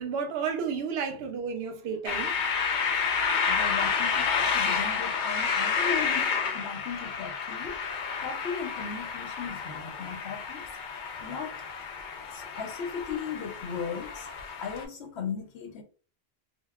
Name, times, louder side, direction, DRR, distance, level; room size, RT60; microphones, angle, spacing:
voice 1, 0.0-2.3, right 6 dB, 70° right, 0.8 m, -32 dB
sound 1, 2.1-14.8, left 5 dB, 55° left, 0.6 m, -30 dB
voice 2, 3.5-10.6 11.0-11.6 12.3-15.8, left 6 dB, 80° left, 0.9 m, -37 dB
3.4 x 2.3 x 2.2 m
omnidirectional pair, 1.1 m